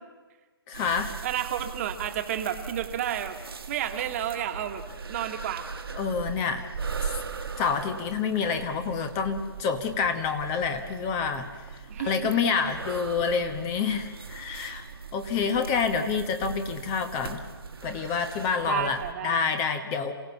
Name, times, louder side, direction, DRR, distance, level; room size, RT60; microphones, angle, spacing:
voice 1, 0.7-1.2 5.9-6.7 7.0-7.1 7.6-14.8 15.1-17.4 17.8-20.1, left 5 dB, 25° left, 8 dB, 1.3 m, -28 dB
sound 1, 0.7-19.1, right 5 dB, 70° right, 1.8 m, -39 dB
voice 2, 1.2-3.4 3.7-4.8 5.1-5.7 11.9-12.7 18.6-19.4, right 10 dB, 35° right, 6 dB, 1.7 m, -31 dB
27.5 x 17.0 x 7.2 m, 1.4 s
figure-of-eight pair, 140°, 13 cm